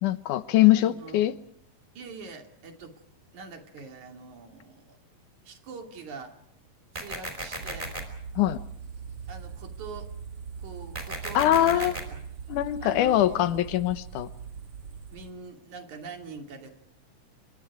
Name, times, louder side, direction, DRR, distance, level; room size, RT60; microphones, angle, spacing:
voice 1, 0.0-1.3 8.4-8.6 11.3-11.9 12.5-14.3, left 13 dB, 85° left, 13 dB, 2.5 m, -22 dB
voice 2, 0.8-1.2 2.0-2.9 3.3-5.0 5.4-6.4 6.9-7.9 9.3-10.1 10.6-12.2 12.8-13.6 15.1-16.8, right 4 dB, 70° right, 4 dB, 4.0 m, -43 dB
sound 1, 6.9-8.0 10.9-12.0, right 1 dB, 15° right, 4.7 m, -35 dB
sound 2, 7.6-15.3, right 6 dB, 55° right, 2.1 m, -41 dB
30.0 x 24.0 x 4.8 m, 0.74 s
omnidirectional pair, 3.5 m